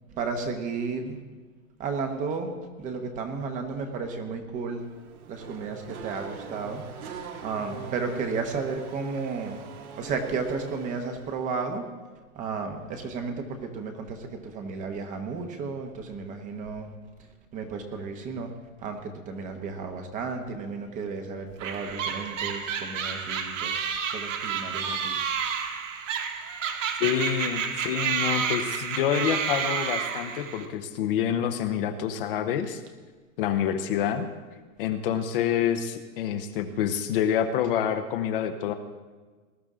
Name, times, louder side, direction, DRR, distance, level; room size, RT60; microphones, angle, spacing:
voice 1, 0.2-1.2 1.8-2.5 2.8-4.8 5.3-6.8 7.4-9.6 10.0-11.8 12.4-16.9 17.5-18.5 18.8-25.2, right 4 dB, 20° right, 5 dB, 1.0 m, -33 dB
Race car auto racing / Accelerating revving vroom, 4.8-11.5, right 6 dB, 75° right, 2.2 m, -42 dB
sound 1, 21.6-30.7, right 7 dB, 60° right, 1.9 m, -30 dB
voice 2, 27.0-32.8 33.4-34.3 34.8-38.7, left 9 dB, 40° left, 7 dB, 1.0 m, -27 dB
20.0 x 12.0 x 3.8 m, 1.4 s
hypercardioid pair, 155°, 43 cm